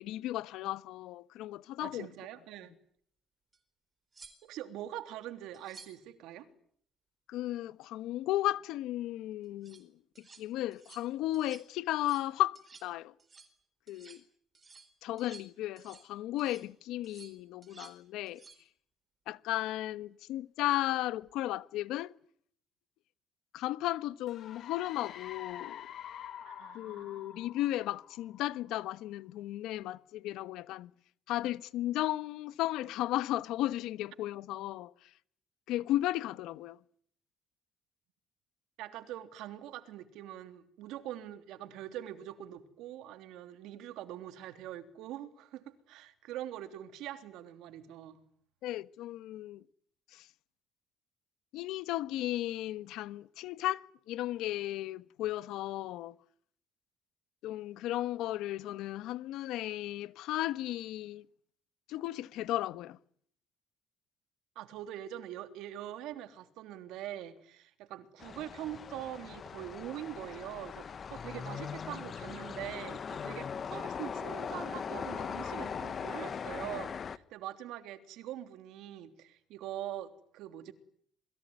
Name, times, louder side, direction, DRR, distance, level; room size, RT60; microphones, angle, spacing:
voice 1, 0.0-2.1 7.3-9.9 10.4-13.1 13.9-14.2 15.0-18.4 19.3-22.1 23.5-25.8 26.7-30.9 31.3-34.9 35.7-36.8 48.6-49.6 50.1-50.3 51.5-56.1 57.4-61.2 61.9-63.0, left 14 dB, 80° left, 1.1 m, -35 dB
voice 2, 1.8-2.7 4.4-6.5 26.4-27.5 38.8-48.2 64.5-80.7, right 12 dB, 80° right, 3.2 m, -43 dB
sound 1, 3.5-3.6 4.1-4.7 5.5-6.1 9.4-9.8 10.1-10.4 10.7-11.1 11.3-11.7 11.9-12.3 12.5-12.9 13.2-13.5 13.9-14.2 14.5-16.1 16.4-16.7 17.0-18.0 18.3-18.6 21.2-21.4, right 4 dB, 20° right, 4.1 m, -55 dB
sound 2, 24.3-28.8, left 10 dB, 50° left, 1.9 m, -47 dB
sound 3, 68.2-77.2, left 6 dB, 30° left, 1.1 m, -40 dB
27.5 x 21.5 x 9.6 m
cardioid pair, 165°, 0 cm